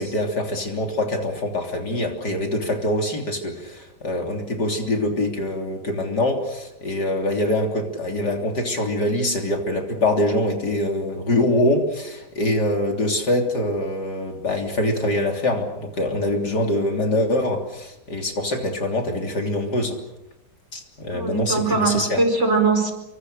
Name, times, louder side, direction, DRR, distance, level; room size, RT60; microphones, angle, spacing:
voice 1, 0.0-20.0 20.7-22.2, left 1 dB, 55° left, 3 dB, 3.9 m, -24 dB
voice 2, 21.1-22.9, right 3 dB, 35° right, 5 dB, 4.9 m, -21 dB
28.0 x 25.0 x 6.7 m, 0.92 s
omnidirectional pair, 2.1 m